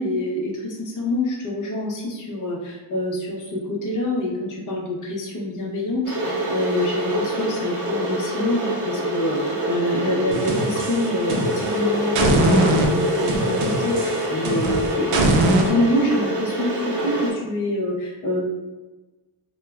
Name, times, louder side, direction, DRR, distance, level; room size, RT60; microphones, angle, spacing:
voice 1, 0.0-18.4, left 1 dB, 40° left, -3 dB, 0.6 m, -26 dB
Water / Boiling, 6.0-17.3, equal, 40° right, 0.8 m, -25 dB
sound 1, 10.3-11.7 12.1-15.7, right 1 dB, 85° right, 0.6 m, -22 dB
3.0 x 2.1 x 2.3 m, 1.2 s
wide cardioid pair, 130°, 50 cm